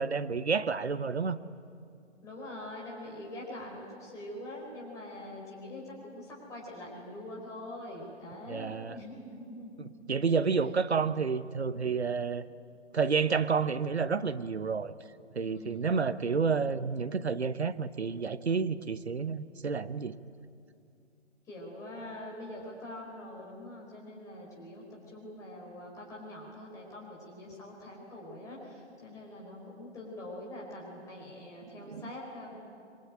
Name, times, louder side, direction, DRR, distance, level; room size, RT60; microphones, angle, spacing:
voice 1, 0.0-1.4 8.5-9.0 9.8-12.4 12.9-14.9 15.3-20.1 31.9-32.1, right 5 dB, 60° right, 14 dB, 1.0 m, -30 dB
voice 2, 2.2-9.9 15.5-16.0 21.5-32.5, left 1 dB, 10° left, -3 dB, 4.7 m, -44 dB
26.0 x 22.5 x 9.0 m, 2.4 s
figure-of-eight pair, 140°, 36 cm